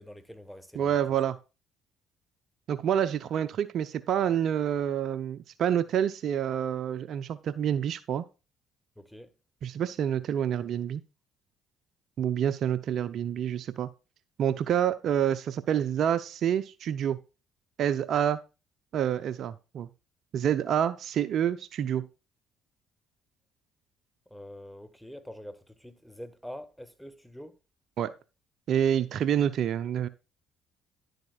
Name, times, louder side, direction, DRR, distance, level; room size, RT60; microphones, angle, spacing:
voice 1, 0.0-1.0 9.0-9.3 24.3-27.6, equal, ahead, 1.4 m, -45 dB
voice 2, 0.7-1.4 2.7-8.2 9.6-11.0 12.2-13.9 14.4-17.2 17.8-18.4 18.9-19.9 20.3-22.1 28.0-28.1 28.7-30.1, right 9 dB, 60° right, 0.6 m, -27 dB
11.0 x 7.8 x 2.3 m
hypercardioid pair, 55°, 0 cm